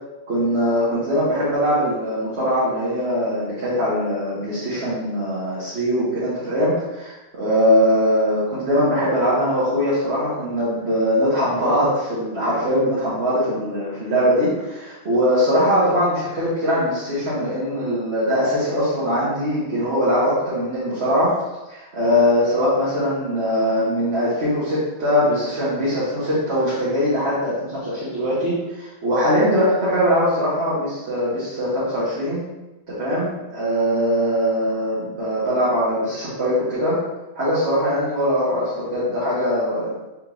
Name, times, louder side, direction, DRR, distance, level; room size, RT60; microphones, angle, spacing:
voice 1, 0.3-21.3 21.7-32.4 32.9-37.0 37.3-40.0, equal, 75° right, -10 dB, 1.5 m, -21 dB
3.6 x 3.5 x 3.1 m, 1.0 s
omnidirectional pair, 1.1 m